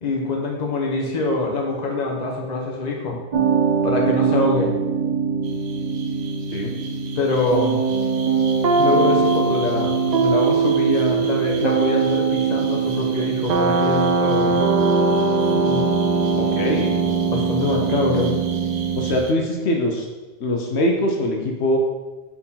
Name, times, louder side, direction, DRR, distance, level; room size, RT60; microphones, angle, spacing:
voice 1, 0.0-3.2 3.8-4.7 7.2-7.8 8.8-14.6 15.5-15.9 17.3-18.4, left 3 dB, 40° left, 0 dB, 1.0 m, -24 dB
sound 1, 3.3-19.2, right 5 dB, 50° right, 0.6 m, -21 dB
sound 2, 5.4-19.3, right 5 dB, 75° right, 1.0 m, -40 dB
voice 2, 16.4-17.0 18.9-20.1 20.4-21.8, left 1 dB, 75° left, 1 dB, 1.1 m, -22 dB
4.5 x 4.4 x 5.5 m, 1.2 s
omnidirectional pair, 1.1 m